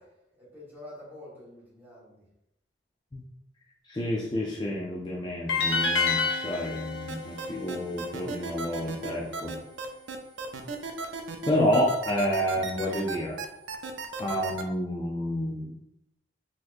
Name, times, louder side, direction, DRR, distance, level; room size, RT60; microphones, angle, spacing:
voice 1, 0.0-2.2, left 1 dB, 10° right, -7 dB, 1.3 m, -47 dB
voice 2, 3.9-9.6 11.5-13.4 14.2-15.7, equal, 25° left, -3 dB, 0.4 m, -29 dB
sound 1, 5.5-8.6, left 4 dB, 85° left, 0.6 m, -29 dB
sound 2, 7.1-14.6, right 4 dB, 80° right, 0.5 m, -35 dB
4.0 x 2.9 x 2.5 m, 0.84 s
head